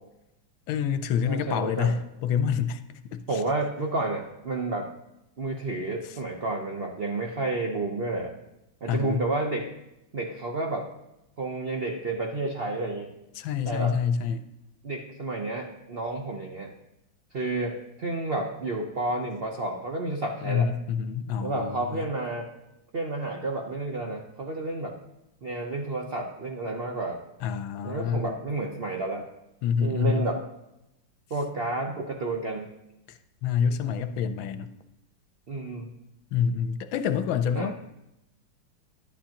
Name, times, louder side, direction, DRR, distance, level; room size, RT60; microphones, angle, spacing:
voice 1, 0.7-3.4 8.9-9.2 13.4-14.4 20.4-22.0 27.4-28.3 29.6-30.3 33.1-34.7 36.3-37.7, left 7 dB, 75° left, 10 dB, 1.3 m, -27 dB
voice 2, 1.3-1.9 3.3-4.9 5.4-8.3 8.8-9.7 10.1-10.9 11.4-13.1 13.7-13.9 14.8-16.7 17.3-20.7 21.4-22.5 22.9-25.0 25.4-27.2 27.8-29.3 29.8-30.4 31.3-32.7 35.5-35.9 37.5-37.7, right 2 dB, 85° right, 1 dB, 0.5 m, -30 dB
11.0 x 10.5 x 2.9 m, 0.89 s
omnidirectional pair, 2.3 m